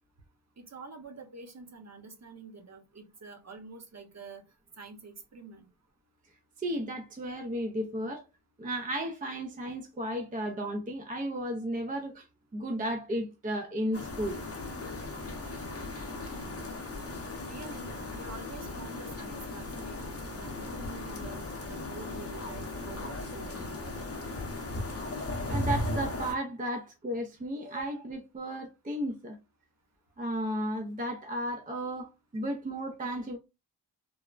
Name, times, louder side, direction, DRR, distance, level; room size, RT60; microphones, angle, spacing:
voice 1, 0.6-4.4 4.8-5.7 17.5-23.9, right 3 dB, 35° right, 0.7 m, -47 dB
voice 2, 6.6-8.2 8.6-12.3 12.5-14.4 25.5-29.4 30.2-33.4, equal, 20° right, 0.3 m, -34 dB
sound 1, 13.9-26.4, left 2 dB, 35° left, 0.7 m, -37 dB
3.2 x 2.0 x 2.3 m
wide cardioid pair, 105°, 44 cm